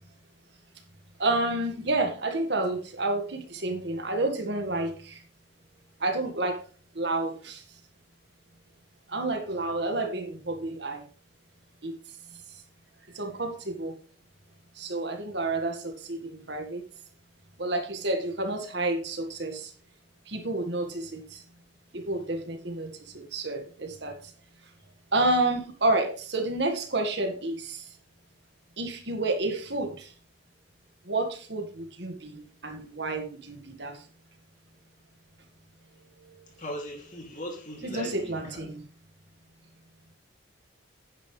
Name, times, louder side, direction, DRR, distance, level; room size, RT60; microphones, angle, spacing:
voice 1, 1.2-5.2 6.0-6.6 6.9-7.6 9.1-11.0 11.8-11.9 12.5-12.6 13.1-14.0 14.7-16.8 17.6-19.7 20.3-21.4 21.9-24.1 25.1-27.9 28.8-30.1 31.0-34.0 37.8-38.8, right 2 dB, 60° right, 5 dB, 1.8 m, -30 dB
voice 2, 36.6-38.7, left 1 dB, 40° left, 1 dB, 2.9 m, -39 dB
9.8 x 9.4 x 3.3 m, 0.40 s
head